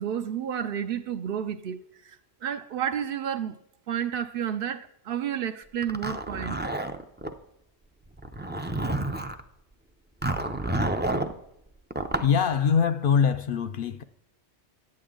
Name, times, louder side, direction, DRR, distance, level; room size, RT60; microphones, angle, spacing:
voice 1, 0.0-2.2 2.4-3.6 3.9-6.5, right 9 dB, 65° right, 0.7 m, -31 dB
Zipper (clothing), 5.8-7.3 8.2-9.4 10.2-11.3 11.9-12.3, right 1 dB, 15° right, 0.4 m, -29 dB
voice 2, 12.2-14.0, left 7 dB, 60° left, 0.6 m, -23 dB
11.0 x 8.6 x 3.7 m
omnidirectional pair, 1.1 m